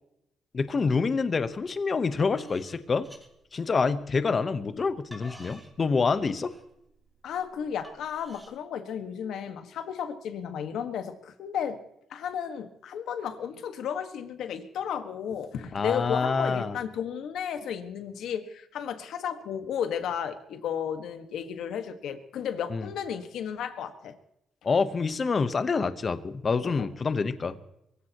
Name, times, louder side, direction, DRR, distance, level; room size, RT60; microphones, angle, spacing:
voice 1, 0.5-3.1 3.5-6.5 15.7-16.7 22.7-22.9 24.6-27.6, left 4 dB, 35° left, 12 dB, 1.0 m, -27 dB
sound 1, 1.4-1.6 2.0-4.1 4.7-8.5, equal, 5° right, 3.2 m, -51 dB
voice 2, 7.2-11.8 12.1-24.1 26.6-26.9, left 8 dB, 80° left, 8 dB, 1.6 m, -33 dB
23.0 x 15.5 x 3.0 m, 0.80 s
cardioid pair, 105°, 0 cm